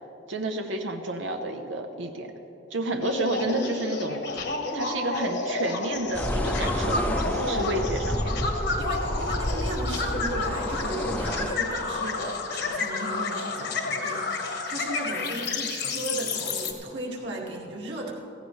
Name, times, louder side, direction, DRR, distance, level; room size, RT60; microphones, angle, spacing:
voice 1, 0.3-2.3 2.7-4.2 4.7-8.3, right 2 dB, 85° right, 5 dB, 0.8 m, -30 dB
sound 1, 3.0-16.7, left 3 dB, 60° left, 1.3 m, -30 dB
sound 2, 6.1-11.5, equal, 10° left, 0.6 m, -30 dB
voice 2, 7.3-7.9 8.8-18.1, right 1 dB, 65° right, -2 dB, 2.1 m, -35 dB
15.5 x 15.5 x 3.2 m, 2.9 s
head